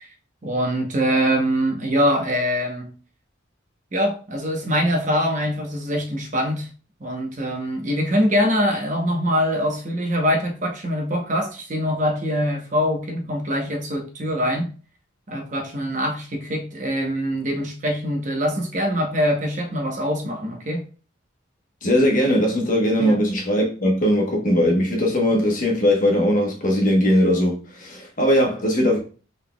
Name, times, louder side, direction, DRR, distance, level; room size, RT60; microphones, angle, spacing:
voice 1, 0.4-2.9 3.9-6.7 7.0-14.7 15.3-20.8 23.0-23.2, equal, 40° right, 0.8 m, -23 dB
voice 2, 21.8-29.0, equal, 40° left, 1.0 m, -19 dB
4.0 x 3.6 x 2.2 m
head